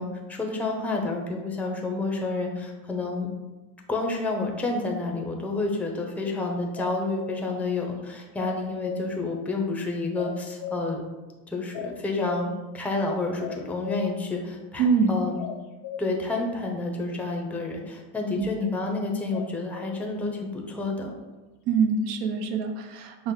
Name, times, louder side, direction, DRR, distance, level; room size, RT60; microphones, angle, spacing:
voice 1, 0.0-3.3 3.9-11.0 11.5-15.4 16.0-21.1, left 3 dB, 5° left, 1 dB, 0.5 m, -29 dB
sound 1, 6.8-7.5 8.4-9.0 10.2-10.9 11.7-12.5 13.4-14.1 15.4-16.0 19.3-20.0, left 5 dB, 60° left, 0.7 m, -36 dB
voice 2, 14.8-15.2 18.4-18.5 21.7-23.3, right 5 dB, 80° right, 5 dB, 0.7 m, -24 dB
5.5 x 2.1 x 3.6 m, 1.1 s
cardioid pair, 110°, 42 cm